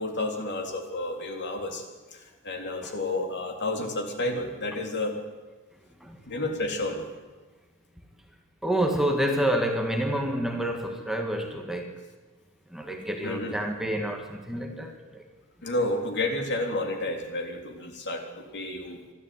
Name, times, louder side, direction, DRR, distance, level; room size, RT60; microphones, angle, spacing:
voice 1, 0.0-1.8 2.1-5.2 6.3-7.1 13.2-13.6 15.6-19.0, left 2 dB, 55° left, 4 dB, 3.5 m, -31 dB
voice 2, 8.6-12.0 12.7-15.2, right 1 dB, ahead, 3 dB, 1.8 m, -28 dB
26.0 x 12.0 x 9.5 m, 1.3 s
head